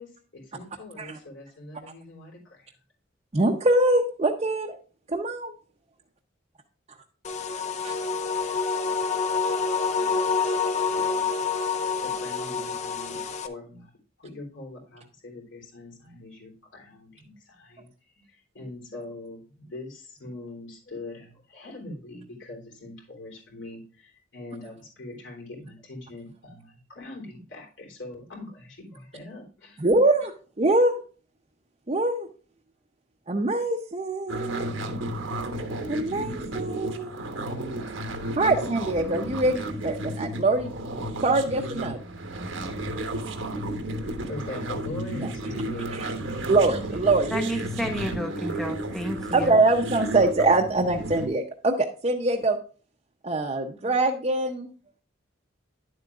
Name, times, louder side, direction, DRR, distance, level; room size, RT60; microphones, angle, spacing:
voice 1, 0.0-2.7 9.9-11.3 11.7-13.9 14.2-17.9 18.1-30.0 44.3-46.5, left 2 dB, 75° left, -1 dB, 3.4 m, -42 dB
voice 2, 3.3-4.8 5.1-5.5 7.8-7.9 29.8-31.0 31.9-32.3 33.3-34.8 35.9-37.3 38.3-40.7 41.2-42.0 45.2-45.3 45.9-46.1 46.5-47.4 49.3-52.6 53.2-54.7, right 2 dB, 30° right, 0 dB, 0.7 m, -23 dB
sound 1, 7.2-13.5, left 5 dB, 35° left, 0.5 m, -27 dB
sound 2, 34.3-51.3, right 1 dB, 90° right, 1.2 m, -33 dB
voice 3, 47.3-49.6, equal, ahead, 3 dB, 1.2 m, -31 dB
10.0 x 7.6 x 2.4 m, 0.38 s
head